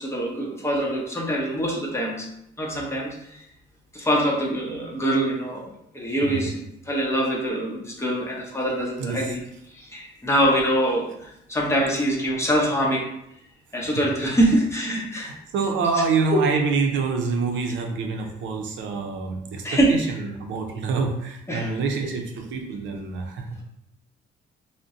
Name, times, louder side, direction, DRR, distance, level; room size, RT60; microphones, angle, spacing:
voice 1, 0.0-2.3 2.6-3.1 3.9-6.6 6.9-9.4 9.8-11.1 11.5-13.0 13.7-15.3 19.6-19.9 21.5-21.7, right 1 dB, 15° left, -2 dB, 0.9 m, -24 dB
voice 2, 9.0-9.3 15.1-23.6, right 4 dB, 75° right, 3 dB, 0.6 m, -26 dB
2.5 x 2.1 x 3.6 m, 0.77 s
cardioid pair, 90°, 20 cm